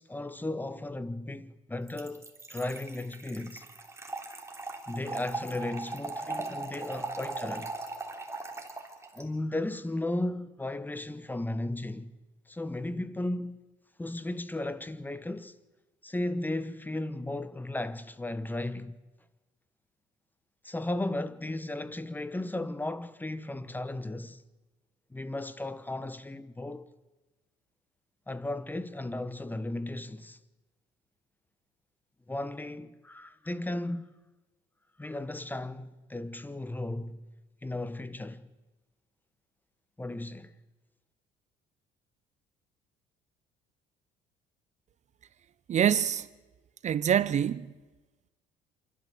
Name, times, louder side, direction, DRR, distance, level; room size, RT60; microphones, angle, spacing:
voice 1, 0.0-3.6 4.9-7.7 9.1-12.1 12.5-13.7 14.0-15.6 16.0-19.0 20.6-24.4 25.1-26.9 28.3-30.4 32.3-34.1 35.0-37.2 37.6-38.5 40.0-40.5, left 1 dB, 10° left, 1.1 m, -35 dB
Trickle dribble / Fill (with liquid), 1.9-9.2, right 3 dB, 15° right, 3.1 m, -39 dB
voice 2, 45.7-46.3 46.8-47.7, right 9 dB, 45° right, 0.7 m, -25 dB
27.0 x 12.0 x 7.8 m
supercardioid pair, 90°, 17 cm